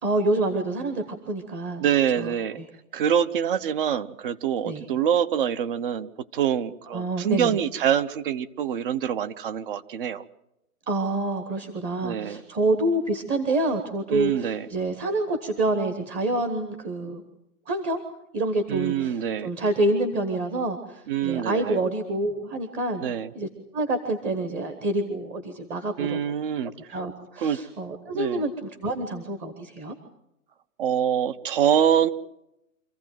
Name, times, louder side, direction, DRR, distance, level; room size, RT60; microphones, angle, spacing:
voice 1, 0.0-1.8 2.2-2.7 4.6-4.9 6.9-7.6 10.9-17.2 17.7-18.0 18.3-23.0 23.3-26.2 26.9-29.9, right 2 dB, 15° right, 7 dB, 1.1 m, -27 dB
voice 2, 1.8-2.6 2.9-10.2 12.0-12.4 14.1-14.7 18.7-19.5 21.1-21.8 23.0-23.3 26.0-27.0 27.4-27.6 28.1-28.4 30.8-32.1, right 9 dB, 35° right, 15 dB, 0.8 m, -25 dB
26.0 x 15.0 x 9.2 m, 0.86 s
hypercardioid pair, 150°, 44 cm